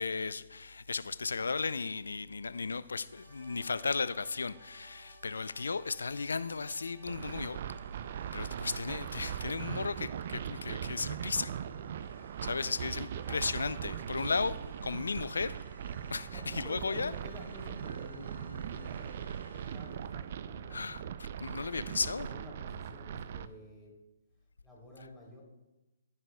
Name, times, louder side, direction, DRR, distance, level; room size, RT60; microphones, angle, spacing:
voice 1, 0.0-7.6 8.3-11.5 12.4-15.6 16.1-17.1 20.7-21.0 21.4-22.3, left 4 dB, 75° left, 0.4 m, -35 dB
sound 1, 3.1-20.9, right 1 dB, 85° right, 2.8 m, -58 dB
sound 2, 7.1-23.5, right 9 dB, 50° right, 0.4 m, -40 dB
voice 2, 16.3-19.2 19.5-21.1 22.2-24.0 24.6-25.4, left 1 dB, 5° left, 3.4 m, -50 dB
15.0 x 9.5 x 2.3 m
figure-of-eight pair, 130°, 0 cm